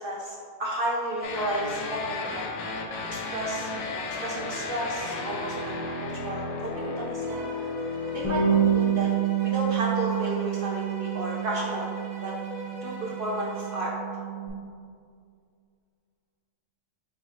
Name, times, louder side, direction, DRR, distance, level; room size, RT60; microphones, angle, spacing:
voice 1, 0.0-2.4 3.1-7.4 8.1-9.1 9.4-11.9 12.2-12.3 12.8-13.9, right 1 dB, 60° right, -3 dB, 0.6 m, -32 dB
sound 1, 1.2-8.8, left 3 dB, 90° left, 1.0 m, -34 dB
Bowed string instrument, 7.2-14.0, right 1 dB, 80° right, 1.3 m, -42 dB
Bass guitar, 8.2-14.5, right 9 dB, 40° left, 0.5 m, -28 dB
5.4 x 2.3 x 4.3 m, 2.2 s
omnidirectional pair, 1.4 m